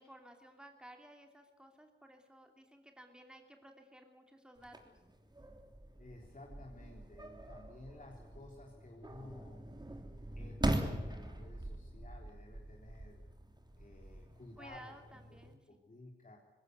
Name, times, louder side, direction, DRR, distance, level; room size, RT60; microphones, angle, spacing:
voice 1, 0.0-4.8 14.6-15.8, right 1 dB, 5° right, 4 dB, 2.8 m, -56 dB
sound 1, 4.6-15.5, right 1 dB, 20° right, 3.3 m, -42 dB
voice 2, 6.0-9.6 10.4-13.2 13.8-14.9 15.7-16.4, left 2 dB, 40° left, 0 dB, 3.6 m, -54 dB
20.0 x 17.5 x 9.4 m, 1.1 s
cardioid pair, 65°, 20 cm